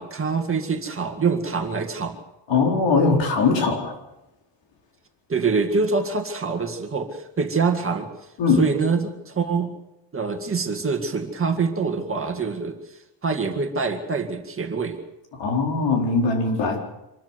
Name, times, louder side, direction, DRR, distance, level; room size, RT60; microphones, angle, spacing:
voice 1, 0.0-2.2 5.3-8.1 8.6-9.7 10.1-12.8 13.2-15.0, right 4 dB, 25° right, 5 dB, 2.1 m, -25 dB
voice 2, 2.5-4.0 8.4-8.6 15.4-16.8, left 4 dB, 65° left, 2 dB, 4.6 m, -20 dB
26.0 x 13.5 x 8.1 m, 0.96 s
cardioid pair, 150°, 46 cm